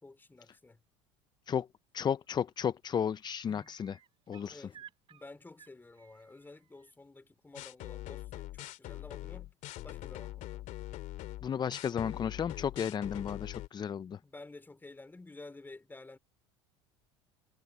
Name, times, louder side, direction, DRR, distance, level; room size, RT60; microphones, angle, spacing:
voice 1, 0.0-0.8 3.5-3.7 4.5-9.6 9.8-10.6 14.2-16.2, left 2 dB, 15° left, 4.8 m, -52 dB
voice 2, 1.9-4.0 4.3-4.7 11.4-14.2, left 8 dB, 30° left, 0.6 m, -33 dB
sound 1, 2.2-2.6 2.9-6.9 8.6-8.7, right 9 dB, 35° right, 2.8 m, -58 dB
sound 2, 7.5-13.7, left 16 dB, 55° left, 2.4 m, -43 dB
hypercardioid pair, 85°, 15 cm